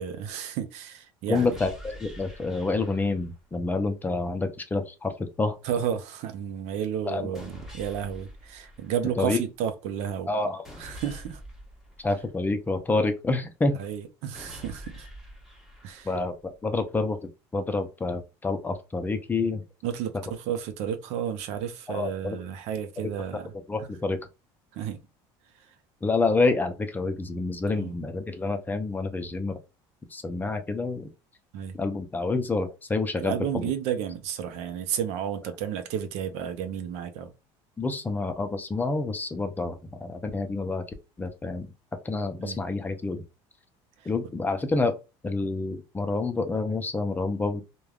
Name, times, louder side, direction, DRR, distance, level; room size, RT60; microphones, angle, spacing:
voice 1, 0.0-1.5 5.6-10.3 10.8-11.4 13.8-15.1 15.8-16.1 19.8-23.5 24.7-25.0 25.7-25.8 27.7-27.9 31.5-31.8 33.2-37.3 42.4-42.6, right 9 dB, 70° right, 0.5 m, -32 dB
voice 2, 1.3-5.6 7.1-7.4 9.2-9.4 10.3-10.7 12.0-13.8 16.0-17.2 17.5-19.6 21.9-22.4 23.7-24.2 26.0-29.6 30.1-31.1 31.8-33.7 37.8-40.8 41.2-41.7 42.0-43.3 44.0-44.9 45.2-47.6, left 3 dB, 15° left, 0.5 m, -28 dB
sound 1, 1.3-3.4 7.3-9.4 10.6-12.7 14.3-16.4, equal, 5° right, 1.1 m, -45 dB
3.2 x 2.2 x 2.4 m
cardioid pair, 120°, 12 cm